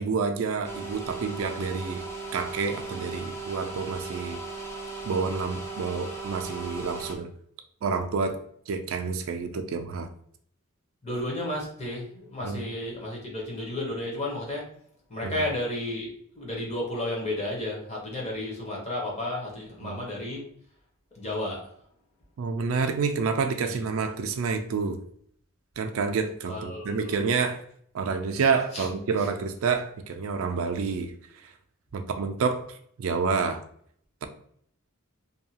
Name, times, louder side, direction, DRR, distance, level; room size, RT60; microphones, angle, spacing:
voice 1, 0.0-2.0 2.3-4.4 5.0-7.3 7.8-8.4 8.7-10.1 12.4-12.6 15.2-15.4 19.8-20.0 22.4-25.0 25.8-27.6 27.9-31.1 31.9-33.6, right 5 dB, 65° right, 7 dB, 0.3 m, -28 dB
sound 1, 0.6-7.1, right 3 dB, 15° left, 0.4 m, -37 dB
voice 2, 11.0-14.7 15.1-20.5 21.1-21.7 23.6-23.8 26.5-27.2 28.7-28.9, left 1 dB, 30° left, -3 dB, 0.9 m, -32 dB
2.7 x 2.3 x 2.8 m, 0.64 s
head